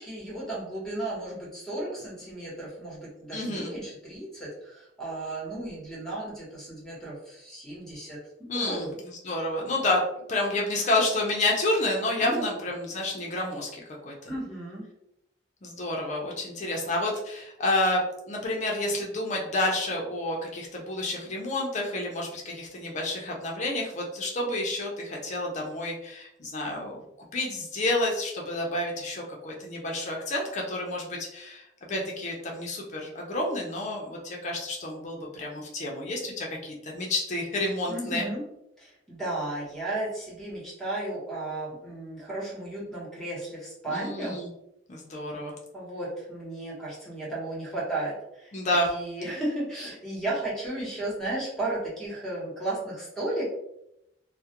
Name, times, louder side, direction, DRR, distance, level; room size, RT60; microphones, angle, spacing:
voice 1, 0.0-9.0 12.2-12.4 14.3-14.9 37.9-38.4 38.8-44.4 45.7-53.5, right 2 dB, 5° left, -7 dB, 0.9 m, -34 dB
voice 2, 3.3-3.7 8.5-10.0 10.3-14.3 15.6-18.0 18.3-27.0 27.3-38.3 43.9-44.5 44.9-45.5 48.5-48.9, left 2 dB, 40° left, -1 dB, 0.5 m, -29 dB
2.3 x 2.1 x 2.8 m, 0.81 s
head